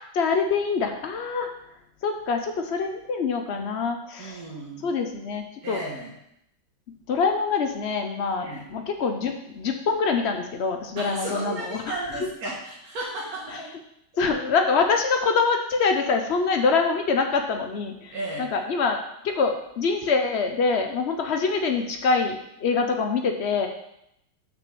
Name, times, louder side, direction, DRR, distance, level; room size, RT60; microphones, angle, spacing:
voice 1, 0.1-1.5 2.0-4.4 4.8-5.8 7.1-12.3 13.5-13.6 14.2-19.0 19.2-23.7, left 4 dB, 85° left, 5 dB, 0.5 m, -25 dB
voice 2, 4.2-4.8 5.6-6.1 8.4-8.6 11.0-13.7 18.1-18.5, right 2 dB, 50° right, -5 dB, 2.0 m, -34 dB
5.9 x 5.8 x 7.0 m, 0.78 s
omnidirectional pair, 2.2 m